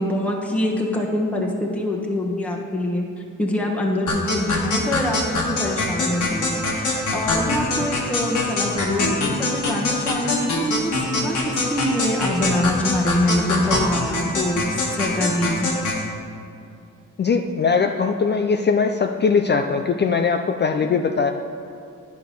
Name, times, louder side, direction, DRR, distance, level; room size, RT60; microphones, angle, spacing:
voice 1, 0.0-3.0 3.4-15.7 20.8-20.9, left 1 dB, 5° left, -2 dB, 1.2 m, -25 dB
sound 1, 4.1-16.0, left 2 dB, 65° left, 1.7 m, -24 dB
voice 2, 17.2-21.3, left 5 dB, 35° left, 5 dB, 0.4 m, -20 dB
10.5 x 4.7 x 5.3 m, 2.5 s
cardioid pair, 75°, 32 cm